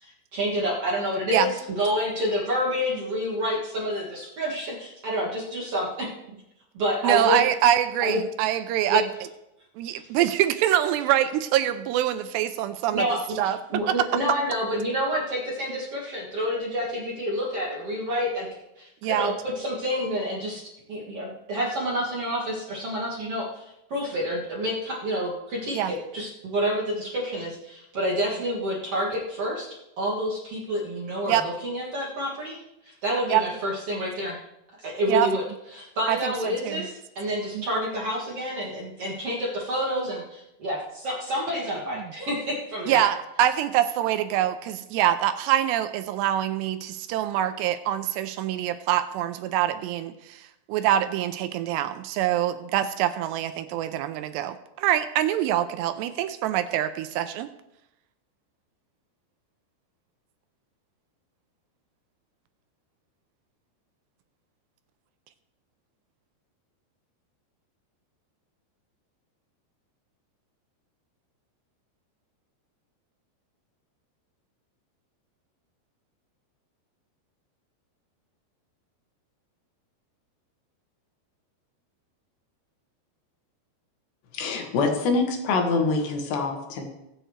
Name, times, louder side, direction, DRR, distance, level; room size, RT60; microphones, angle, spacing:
voice 1, 0.0-6.1 6.7-7.4 8.0-8.2 8.9-9.0 9.9-10.1 12.9-13.2 13.7-20.6 20.9-29.7 30.0-32.6 32.8-34.4 34.8-35.4 35.7-43.0, equal, 50° right, -4 dB, 1.9 m, -28 dB
voice 2, 7.0-9.0 9.8-13.0 13.4-13.6 13.9-14.1 19.0-19.3 25.7-25.9 31.3-31.4 33.3-33.4 35.1-35.3 36.1-36.8 37.6-37.7 42.9-50.4 50.7-57.5, right 11 dB, 85° right, 10 dB, 2.6 m, -24 dB
voice 3, 84.3-86.8, left 3 dB, 75° left, 3 dB, 3.7 m, -25 dB
22.5 x 7.8 x 3.2 m, 0.88 s
omnidirectional pair, 5.1 m